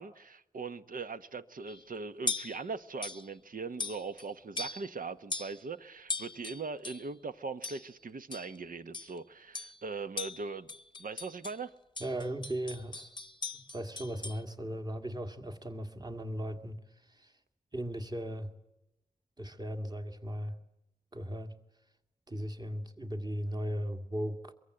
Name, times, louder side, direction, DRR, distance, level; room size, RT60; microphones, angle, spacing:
voice 1, 0.0-10.7 11.0-11.7, right 4 dB, 75° right, 1.1 m, -40 dB
sound 1, 1.7-1.9 2.3-2.6 3.0-3.3 3.8-4.3 4.6-5.0 5.3-5.6 6.1-7.1 7.6-7.9 8.3-8.6 8.9-9.2 9.5-9.8 10.2-11.6 12.0-14.4, left 3 dB, 30° left, 0.8 m, -39 dB
voice 2, 12.0-13.1 13.5-17.3 17.7-18.5 19.4-20.6 21.1-21.6 22.3-24.5, equal, 30° right, 2.1 m, -37 dB
23.5 x 23.5 x 7.9 m
wide cardioid pair, 115°, 14 cm